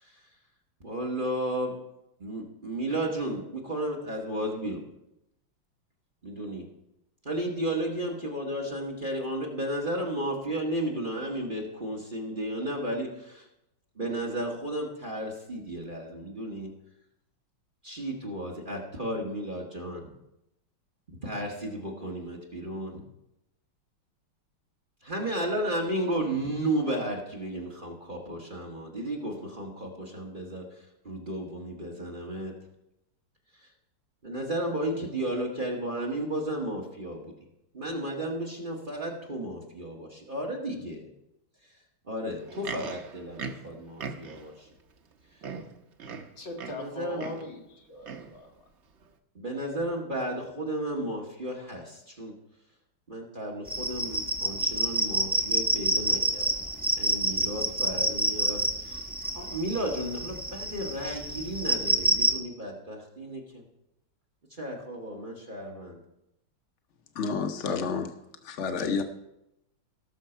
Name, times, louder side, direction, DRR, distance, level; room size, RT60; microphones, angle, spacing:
voice 1, 0.8-1.7 2.2-4.8 6.2-6.6 7.2-13.5 14.0-16.7 17.8-20.0 21.1-23.0 25.0-32.5 33.6-33.7 34.2-37.3 37.7-41.1 42.0-44.7 46.7-47.2 49.3-52.3 53.1-56.5 57.0-59.0 59.3-63.6 64.5-66.0, right 1 dB, 25° right, -1 dB, 1.5 m, -33 dB
Livestock farm animals working animals, 42.3-44.5 45.1-45.2 45.4-46.9 47.2-47.5 48.0-48.4 49.1-49.2, right 5 dB, 75° right, 0.6 m, -40 dB
voice 2, 46.4-48.5, left 1 dB, 60° left, 0 dB, 2.7 m, -40 dB
sound 1, 53.7-62.4, right 1 dB, 5° right, 0.8 m, -28 dB
voice 3, 67.2-68.1 68.4-69.0, left 5 dB, 80° left, 6 dB, 0.6 m, -29 dB
18.0 x 6.5 x 4.4 m, 0.86 s
omnidirectional pair, 2.4 m